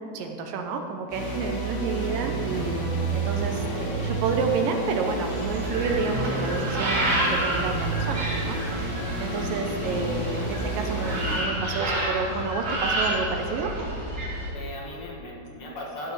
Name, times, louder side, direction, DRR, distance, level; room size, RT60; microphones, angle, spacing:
voice 1, 0.1-13.7, right 4 dB, 75° right, 4 dB, 2.1 m, -30 dB
sound 1, 1.1-11.4, right 3 dB, 70° left, 5.1 m, -30 dB
sound 2, 5.3-14.5, right 1 dB, 45° right, 3.0 m, -29 dB
voice 2, 14.5-16.1, left 1 dB, 55° left, -4 dB, 1.7 m, -38 dB
12.5 x 4.9 x 7.4 m, 2.5 s
omnidirectional pair, 4.5 m